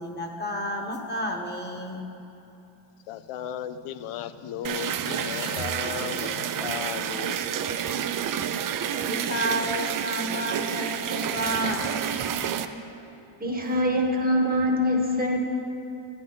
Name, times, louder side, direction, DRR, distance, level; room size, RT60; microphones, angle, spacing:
voice 1, 0.0-2.0 7.9-8.0 9.0-12.0, equal, 20° left, 3 dB, 1.1 m, -31 dB
voice 2, 3.1-7.4 9.6-9.7, left 9 dB, 85° left, 11 dB, 0.6 m, -35 dB
sound 1, 4.6-12.7, right 9 dB, 45° right, 0.5 m, -29 dB
voice 3, 13.4-15.4, left 1 dB, 20° right, 0 dB, 1.1 m, -24 dB
12.0 x 10.5 x 3.9 m, 3.0 s
cardioid pair, 135°, 50 cm